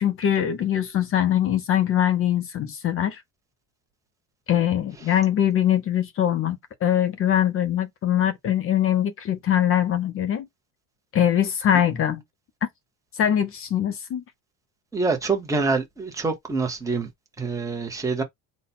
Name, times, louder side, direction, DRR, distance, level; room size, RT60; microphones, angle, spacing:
voice 1, 0.0-3.2 4.5-10.5 11.1-12.2 13.2-14.2, left 10 dB, 30° left, 0.4 m, -22 dB
voice 2, 14.9-17.1 17.4-18.2, right 4 dB, 5° right, 0.8 m, -25 dB
4.1 x 2.2 x 4.1 m
cardioid pair, 165°, 45 cm